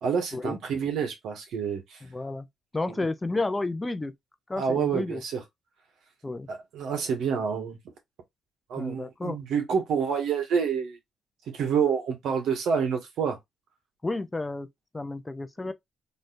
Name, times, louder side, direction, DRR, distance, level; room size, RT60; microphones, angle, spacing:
voice 1, 0.0-2.0 4.5-5.4 6.5-7.8 8.7-11.0 11.5-13.4 15.6-15.7, right 6 dB, 75° right, 1.6 m, -28 dB
voice 2, 2.1-2.5 2.7-4.1 4.5-5.2 6.2-6.5 8.8-9.4 14.0-14.7 14.9-15.7, left 2 dB, 15° left, 0.5 m, -31 dB
4.3 x 3.2 x 2.5 m
cardioid pair, 90°, 0 cm